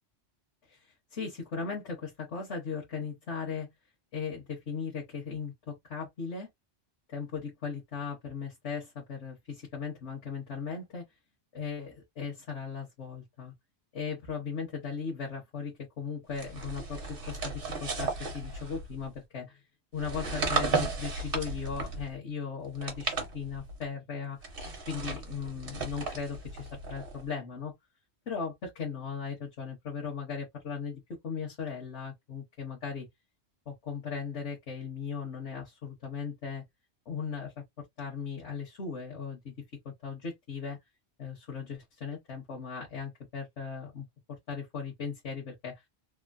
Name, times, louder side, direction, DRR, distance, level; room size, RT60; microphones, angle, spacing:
voice 1, 1.1-3.7 4.1-6.5 7.1-11.0 11.5-13.5 13.9-19.6 19.9-24.5 24.9-27.7 28.3-33.1 33.7-36.6 37.1-37.5 38.0-39.5 39.8-40.8 41.2-44.0 44.5-45.8, left 6 dB, 85° left, 1.4 m, -37 dB
sound 1, 16.3-19.1 19.9-22.1 22.7-23.8 24.4-27.3, right 4 dB, 55° right, 1.1 m, -35 dB
3.6 x 2.0 x 2.5 m
omnidirectional pair, 1.1 m